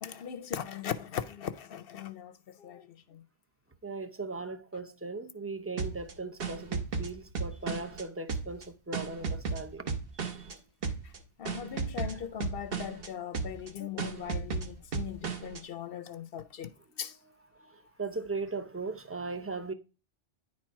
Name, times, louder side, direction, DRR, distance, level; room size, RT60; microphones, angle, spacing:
voice 1, 0.0-3.2 10.8-11.1 11.4-16.7 17.0-17.2, left 9 dB, 60° left, 0.7 m, -39 dB
voice 2, 3.8-10.5 15.9-16.0 17.5-19.7, right 3 dB, 20° right, 0.4 m, -38 dB
sound 1, 5.8-8.0 8.3-10.5 10.8-11.2 11.5-13.1 13.3-13.7 14.0-15.6, right 4 dB, 55° right, 1.1 m, -34 dB
9.8 x 4.4 x 4.5 m
omnidirectional pair, 1.2 m